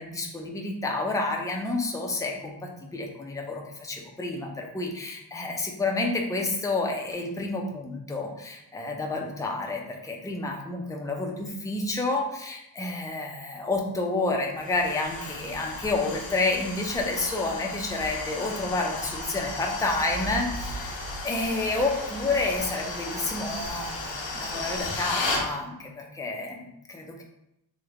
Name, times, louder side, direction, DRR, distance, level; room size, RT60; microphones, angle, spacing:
voice 1, 0.0-27.2, left 2 dB, 10° left, 1 dB, 0.4 m, -30 dB
sound 1, 14.6-25.5, left 2 dB, 90° left, 0.8 m, -34 dB
3.2 x 2.1 x 3.5 m, 0.83 s
wide cardioid pair, 110°, 44 cm